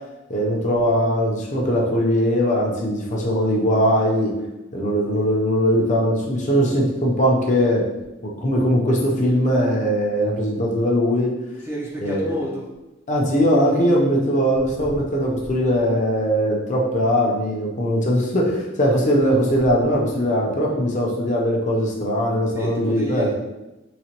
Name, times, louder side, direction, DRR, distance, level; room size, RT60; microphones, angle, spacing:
voice 1, 0.3-4.3 4.7-7.8 8.2-11.3 12.0-12.3 13.1-23.3, equal, 35° left, -2 dB, 0.6 m, -20 dB
voice 2, 11.6-12.7 14.8-15.0 22.5-23.3, right 1 dB, 10° right, -3 dB, 0.4 m, -30 dB
3.9 x 2.2 x 2.9 m, 1.0 s
head